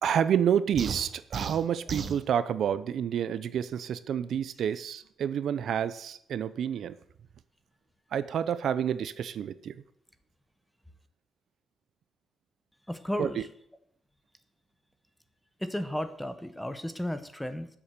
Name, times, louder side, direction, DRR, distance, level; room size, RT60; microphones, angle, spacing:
voice 1, 0.0-7.0 8.1-9.7 13.2-13.4, right 9 dB, 60° right, 14 dB, 0.6 m, -29 dB
sound 1, 0.8-2.2, right 5 dB, 35° right, 1.0 m, -35 dB
voice 2, 12.9-13.5 15.6-17.7, left 1 dB, 5° left, 11 dB, 0.8 m, -34 dB
12.5 x 7.3 x 6.7 m, 0.70 s
cardioid pair, 165°, 0 cm